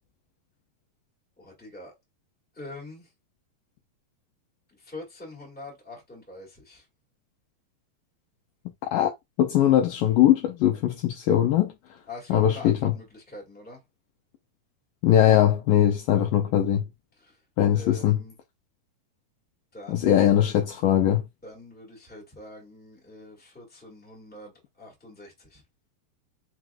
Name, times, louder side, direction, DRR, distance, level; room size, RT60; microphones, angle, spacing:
voice 1, 1.4-1.9 2.5-3.1 4.7-6.8 12.1-13.8 17.2-17.4 17.7-18.3 19.7-20.5 21.4-25.6, left 2 dB, 5° left, 0.9 m, -44 dB
voice 2, 9.4-11.7 12.3-12.9 15.0-16.8 17.6-18.2 19.9-21.2, left 11 dB, 80° left, 2.1 m, -21 dB
5.9 x 2.5 x 2.3 m
omnidirectional pair, 4.1 m